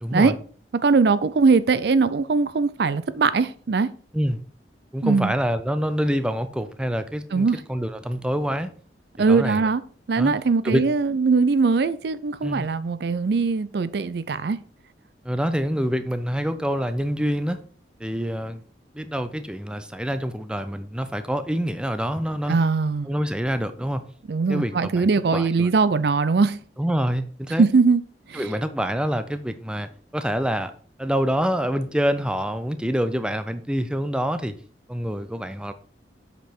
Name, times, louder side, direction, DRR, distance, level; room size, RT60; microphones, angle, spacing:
voice 1, 0.0-0.3 4.1-4.4 4.9-8.7 9.3-9.7 10.2-10.3 10.6-10.8 12.4-12.7 15.2-17.6 18.0-18.6 18.9-22.6 23.1-24.0 24.5-25.7 26.8-27.7 28.3-30.7 31.0-34.5 34.9-35.7, equal, 5° right, 0.4 m, -26 dB
voice 2, 0.7-3.9 5.0-5.3 7.3-7.6 9.2-9.8 10.1-14.6 22.5-23.1 24.3-26.6 27.6-28.0 28.3-28.4, right 4 dB, 60° right, 0.4 m, -21 dB
7.7 x 5.2 x 4.4 m
head